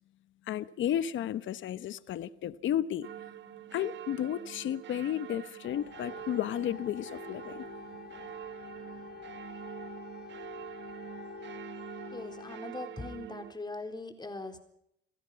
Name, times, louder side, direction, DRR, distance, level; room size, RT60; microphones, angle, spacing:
voice 1, 0.5-3.1 3.7-7.6, left 11 dB, 75° left, 1.0 m, -33 dB
sound 1, 3.0-13.5, right 11 dB, 65° right, 1.6 m, -45 dB
sound 2, 5.6-12.6, left 8 dB, 55° left, 2.2 m, -47 dB
voice 2, 12.1-14.6, left 2 dB, 20° left, 4.1 m, -41 dB
28.5 x 16.5 x 5.7 m
cardioid pair, 90°, 20 cm